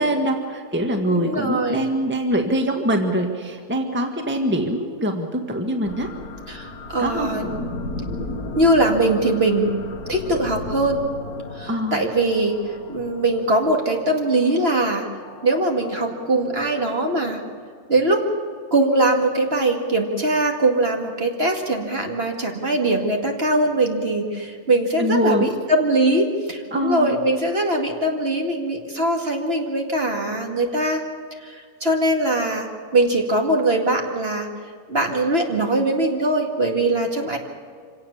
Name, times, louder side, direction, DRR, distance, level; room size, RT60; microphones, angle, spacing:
voice 1, 0.0-6.1 7.0-7.3 11.7-12.0 25.0-25.5 26.7-27.1, right 1 dB, 10° right, 4 dB, 1.6 m, -23 dB
voice 2, 1.1-1.9 6.5-7.5 8.6-9.8 10.1-11.0 11.6-12.6 12.9-15.1 15.4-17.4 17.9-18.2 18.7-31.0 31.4-34.5 34.9-37.4, right 2 dB, 40° right, 2 dB, 2.4 m, -21 dB
sound 1, 5.8-17.8, left 2 dB, 90° left, 2.2 m, -36 dB
26.0 x 17.0 x 7.1 m, 2.1 s
omnidirectional pair, 1.6 m